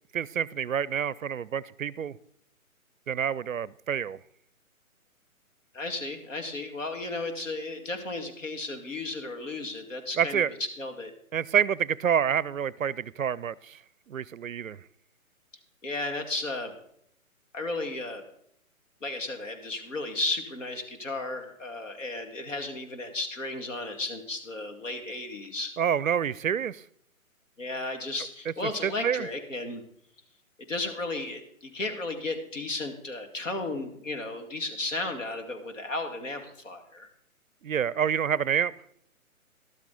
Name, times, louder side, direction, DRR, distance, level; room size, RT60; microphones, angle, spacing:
voice 1, 0.1-2.2 3.1-4.2 10.2-10.5 11.3-13.8 14.1-14.8 25.8-26.8 28.6-29.3 37.6-38.7, right 8 dB, 65° right, 23 dB, 0.5 m, -28 dB
voice 2, 5.7-10.5 10.8-11.1 15.8-16.8 17.5-18.2 19.0-25.7 27.6-29.8 30.7-37.1, left 2 dB, 60° left, 6 dB, 2.2 m, -34 dB
13.0 x 12.0 x 3.9 m, 0.70 s
figure-of-eight pair, 135°, 43 cm